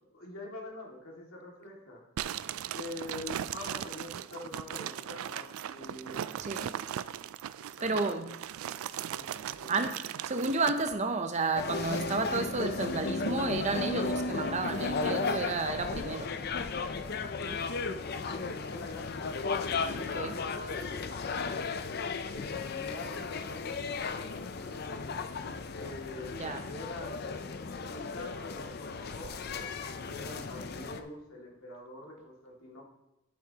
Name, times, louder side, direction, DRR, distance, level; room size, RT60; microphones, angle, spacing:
voice 1, 0.1-2.0 2.7-6.3 7.8-8.2 8.9-9.3 9.5-9.9 17.8-19.5 19.9-24.9 25.7-27.2 27.8-29.7 30.0-32.8, left 2 dB, 85° left, 2.2 m, -45 dB
sound 1, 2.2-10.9, right 10 dB, 85° right, 0.3 m, -38 dB
voice 2, 6.4-6.8 7.8-8.3 9.7-16.3 20.0-20.4 26.4-26.6, right 3 dB, 35° right, 0.6 m, -32 dB
sound 2, 11.6-31.0, left 4 dB, 50° left, 0.5 m, -35 dB
11.0 x 8.4 x 2.9 m
head